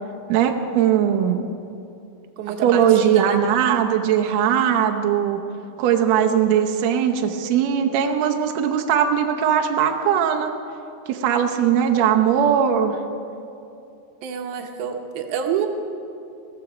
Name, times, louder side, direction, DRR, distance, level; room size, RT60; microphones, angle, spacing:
voice 1, 0.3-1.5 2.6-5.4 5.8-10.5 11.1-13.0, right 8 dB, 85° right, 3 dB, 1.5 m, -19 dB
voice 2, 2.4-3.4 14.2-15.7, right 7 dB, 70° right, 4 dB, 2.1 m, -28 dB
15.5 x 14.0 x 5.0 m, 2.7 s
omnidirectional pair, 4.3 m